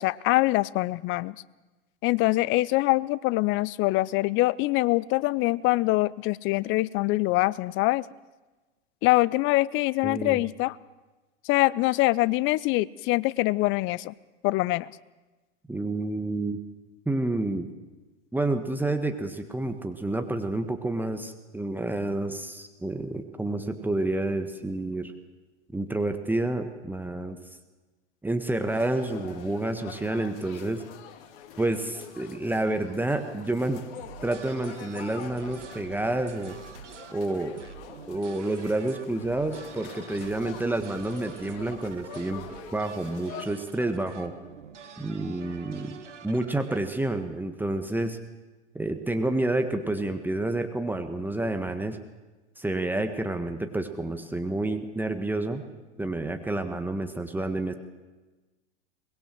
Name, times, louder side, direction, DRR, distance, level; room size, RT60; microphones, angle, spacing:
voice 1, 0.0-1.4 2.0-8.0 9.0-10.8 11.5-14.1 14.4-14.9, left 20 dB, 35° left, 21 dB, 0.7 m, -24 dB
voice 2, 10.0-10.4 15.7-16.6 17.0-17.7 18.3-25.1 25.7-27.4 28.2-30.8 31.6-33.8 34.2-36.6 37.1-37.6 38.1-44.3 45.0-46.0 46.2-48.2 48.7-52.0 52.6-55.6 56.0-57.7, right 2 dB, 5° right, 6 dB, 1.6 m, -29 dB
sound 1, 28.6-43.5, left 9 dB, 50° left, 2.5 m, -46 dB
sound 2, 33.9-46.8, right 7 dB, 80° right, 2.1 m, -46 dB
23.5 x 21.0 x 7.7 m, 1.2 s
hypercardioid pair, 100°, 35 cm